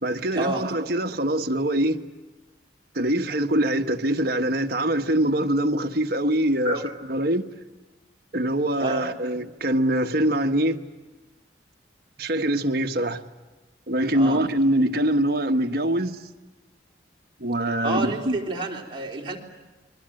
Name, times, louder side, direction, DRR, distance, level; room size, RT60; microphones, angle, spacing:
voice 1, 0.0-2.0 2.9-6.8 7.1-7.5 8.3-10.8 12.2-13.2 13.9-16.2 17.4-18.4, right 1 dB, 55° right, 1.3 m, -23 dB
voice 2, 17.8-19.4, right 2 dB, 30° right, 3.6 m, -29 dB
28.5 x 23.0 x 7.7 m
head